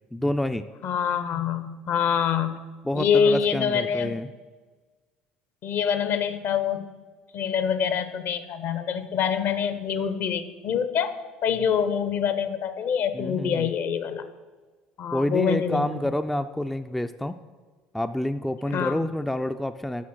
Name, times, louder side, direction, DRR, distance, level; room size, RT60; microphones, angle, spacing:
voice 1, 0.1-0.7 2.8-4.3 13.1-13.7 15.1-17.4 17.9-20.0, left 1 dB, 5° left, 9 dB, 0.3 m, -28 dB
voice 2, 0.8-2.5 2.9-4.1 5.6-6.9 7.3-14.2 15.0-16.0 18.7-18.9, left 7 dB, 50° left, 11 dB, 0.6 m, -25 dB
7.3 x 6.1 x 6.0 m, 1.4 s
figure-of-eight pair, 60°, 5 cm